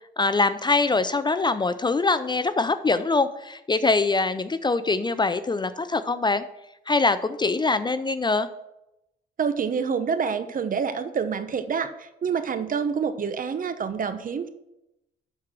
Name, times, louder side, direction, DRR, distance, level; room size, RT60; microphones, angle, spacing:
voice 1, 0.2-6.4 6.9-8.5, left 3 dB, 20° left, 12 dB, 0.5 m, -23 dB
voice 2, 9.4-14.5, right 6 dB, 45° right, 11 dB, 0.9 m, -27 dB
12.0 x 4.7 x 6.0 m, 0.90 s
cardioid pair, 90°, 20 cm